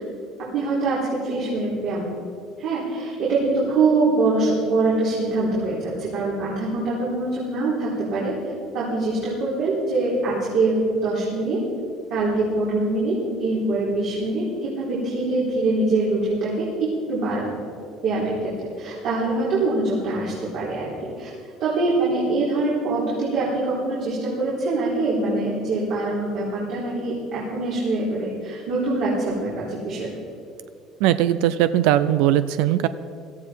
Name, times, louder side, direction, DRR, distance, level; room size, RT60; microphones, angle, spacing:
voice 1, 0.5-2.1 2.6-8.3 8.7-11.6 12.1-17.5 18.0-18.5 18.8-20.9 21.2-21.3 21.6-30.1, right 2 dB, 65° right, -7 dB, 4.1 m, -24 dB
voice 2, 31.0-32.9, right 12 dB, 85° right, 13 dB, 0.5 m, -19 dB
17.0 x 13.5 x 4.6 m, 2.4 s
cardioid pair, 130°, 0 cm